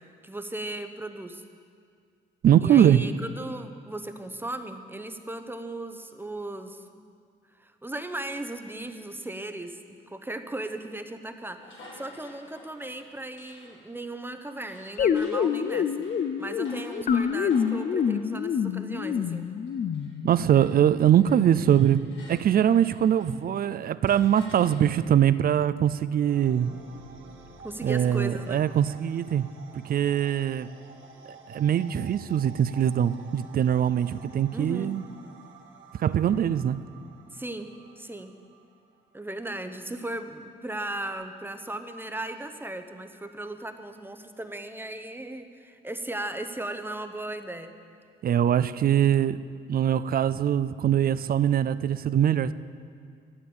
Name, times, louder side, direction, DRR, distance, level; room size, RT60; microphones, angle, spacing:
voice 1, 0.0-1.4 2.6-7.0 7.6-15.9 16.4-19.4 27.6-28.6 34.5-34.9 37.3-37.7 38.0-38.3 39.1-47.7, right 1 dB, 10° right, 7 dB, 0.8 m, -37 dB
voice 2, 2.4-3.0 20.2-26.7 27.8-29.5 29.7-30.7 31.5-35.1 36.0-36.8 48.2-49.4 49.7-52.5, right 10 dB, 50° right, 15 dB, 0.4 m, -22 dB
sound 1, 11.6-20.2 20.5-23.5 24.1-25.3, left 1 dB, 80° left, 2.9 m, -52 dB
sound 2, 15.0-20.5, left 7 dB, 45° left, 0.5 m, -27 dB
sound 3, 26.2-39.6, right 4 dB, 75° right, 1.4 m, -50 dB
12.5 x 8.4 x 7.1 m, 2.2 s
cardioid pair, 90°, 20 cm